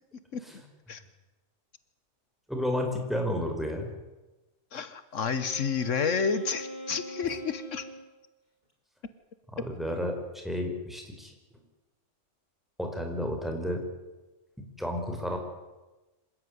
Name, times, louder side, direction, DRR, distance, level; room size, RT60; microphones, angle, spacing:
voice 1, 2.5-3.9 9.5-10.2 10.4-11.6 12.8-13.8 14.8-15.4, left 1 dB, ahead, 3 dB, 5.0 m, -32 dB
voice 2, 4.7-7.9, left 5 dB, 80° left, 13 dB, 1.6 m, -30 dB
Wind instrument woodwind instrument, 5.2-8.1, left 2 dB, 35° left, 4.2 m, -42 dB
26.5 x 16.0 x 9.7 m, 1.1 s
omnidirectional pair, 1.3 m